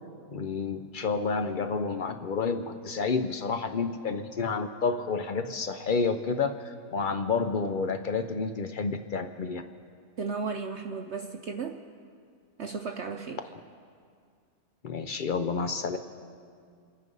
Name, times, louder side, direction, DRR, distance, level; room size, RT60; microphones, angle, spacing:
voice 1, 0.3-9.6 14.8-16.0, left 4 dB, 85° left, 8 dB, 0.4 m, -30 dB
voice 2, 10.2-11.8 12.6-13.4, right 4 dB, 60° right, 4 dB, 0.8 m, -34 dB
27.5 x 10.0 x 5.3 m, 2.2 s
omnidirectional pair, 1.7 m